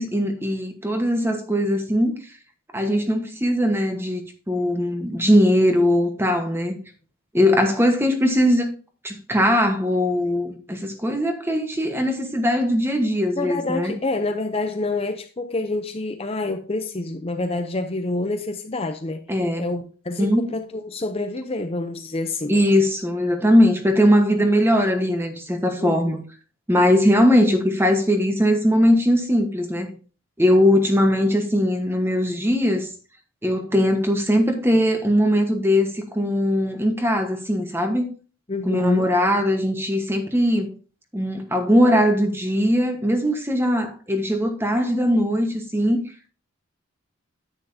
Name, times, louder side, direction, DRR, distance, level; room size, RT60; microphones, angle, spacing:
voice 1, 0.0-2.2 2.7-6.8 7.3-8.7 9.0-13.9 19.3-19.7 20.2-20.4 22.5-26.2 26.7-29.9 30.4-32.9 33.4-38.1 38.6-40.7 41.1-46.0, equal, 10° right, 1.2 m, -20 dB
voice 2, 13.4-19.3 19.6-22.5 25.8-26.0 38.5-39.1, left 2 dB, 25° left, 0.6 m, -27 dB
10.0 x 9.1 x 2.7 m
head